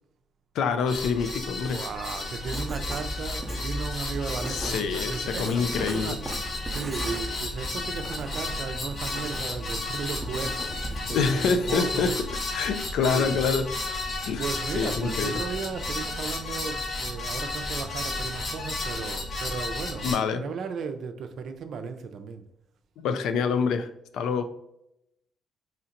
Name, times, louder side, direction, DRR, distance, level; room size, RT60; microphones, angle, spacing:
voice 1, 0.5-1.8 4.5-6.2 11.1-12.2 12.5-13.7 14.2-14.5 14.7-15.4 20.0-20.5 23.0-23.9 24.1-24.4, left 5 dB, 80° left, 0.4 m, -26 dB
sound 1, 0.9-20.2, left 2 dB, 50° left, 0.9 m, -33 dB
voice 2, 1.6-12.2 13.0-13.4 14.4-22.5, right 5 dB, 65° right, 0.4 m, -35 dB
Writing, 2.5-12.0, right 1 dB, 10° right, 0.7 m, -38 dB
4.2 x 2.8 x 2.5 m
cardioid pair, 90°, 0 cm